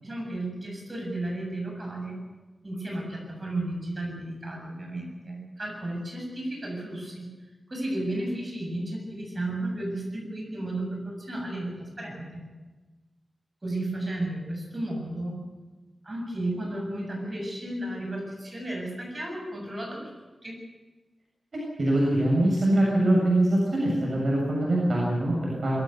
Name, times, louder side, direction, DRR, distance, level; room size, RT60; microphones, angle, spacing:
voice 1, 0.0-2.2 2.6-7.3 7.7-12.4 13.6-15.4 16.0-20.1 20.4-20.6, right 1 dB, 30° right, 0 dB, 7.5 m, -33 dB
voice 2, 21.5-25.8, right 1 dB, 50° right, -4 dB, 7.3 m, -23 dB
22.5 x 15.0 x 9.6 m, 1.2 s
wide cardioid pair, 135°, 0 cm